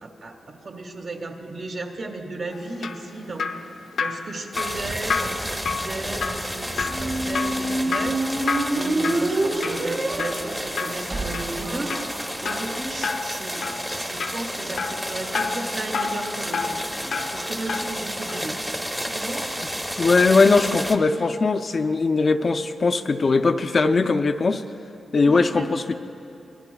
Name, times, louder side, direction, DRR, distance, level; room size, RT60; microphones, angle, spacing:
voice 1, 0.0-3.5 4.0-12.0 12.4-18.6 19.0-19.5 25.2-25.7, right 2 dB, 55° right, 2 dB, 1.6 m, -35 dB
Drip, 2.5-18.0 18.3-18.4, left 5 dB, 75° left, 0.7 m, -31 dB
sound 1, 4.5-21.0, equal, 5° right, 0.8 m, -32 dB
Squeak, 6.8-12.8, right 2 dB, 35° right, 1.4 m, -27 dB
voice 2, 20.0-24.6 25.1-25.9, left 4 dB, 40° left, 8 dB, 0.4 m, -20 dB
25.0 x 20.5 x 2.3 m, 2.7 s
wide cardioid pair, 145°, 0 cm